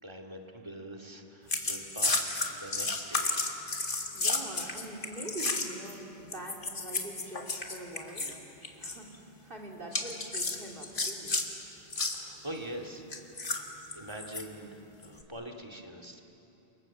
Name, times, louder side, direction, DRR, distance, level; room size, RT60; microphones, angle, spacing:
voice 1, 0.0-3.4 11.9-13.0 13.4-13.7 14.0-16.2, right 1 dB, 25° right, 1 dB, 2.4 m, -44 dB
sound 1, 1.5-5.9 6.3-8.4 8.6-9.0 9.9-11.5 11.9-12.2 13.1-14.4 15.0-15.2, left 3 dB, 55° left, 2.1 m, -32 dB
voice 2, 4.1-8.3 8.8-11.3, right 1 dB, 60° right, -1 dB, 3.1 m, -44 dB
29.0 x 24.5 x 7.4 m, 2.9 s
omnidirectional pair, 1.0 m